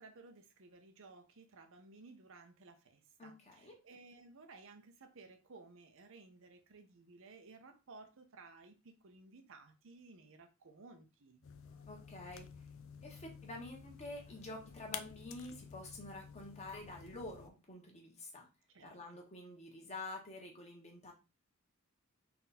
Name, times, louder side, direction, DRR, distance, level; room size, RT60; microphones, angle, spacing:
voice 1, 0.0-11.4 18.7-19.0, right 3 dB, 65° right, 0.7 m, -57 dB
voice 2, 3.2-3.8 11.7-12.6 13.0-18.5 18.8-21.1, left 2 dB, 30° left, 1.3 m, -48 dB
sound 1, 11.4-17.5, left 7 dB, 65° left, 0.5 m, -51 dB
4.2 x 2.6 x 4.2 m
head